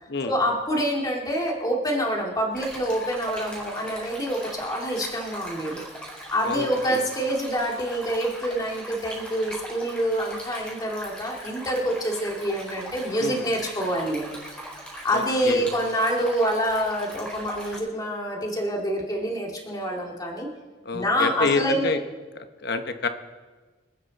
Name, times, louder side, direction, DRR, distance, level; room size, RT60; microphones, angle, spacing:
voice 1, 0.2-5.8 6.3-14.4 15.0-20.5 20.9-21.9, equal, 20° left, -1 dB, 2.2 m, -26 dB
Stream, 2.5-17.8, right 1 dB, 5° left, 4.1 m, -40 dB
voice 2, 6.4-7.0 13.2-13.4 15.1-15.7 20.8-22.0 22.3-23.1, left 4 dB, 55° left, 8 dB, 1.0 m, -28 dB
26.0 x 9.3 x 4.1 m, 1.3 s
head